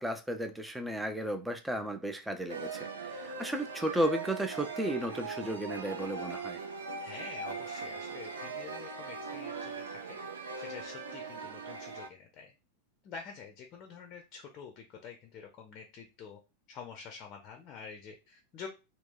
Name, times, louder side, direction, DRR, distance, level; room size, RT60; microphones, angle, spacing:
voice 1, 0.0-6.6, right 1 dB, 5° right, 0.5 m, -34 dB
sound 1, 2.5-12.1, right 4 dB, 70° right, 0.5 m, -40 dB
voice 2, 7.0-12.5 13.0-16.4 16.7-18.7, left 6 dB, 35° left, 0.6 m, -48 dB
2.9 x 2.2 x 3.7 m
figure-of-eight pair, 90°, 0 cm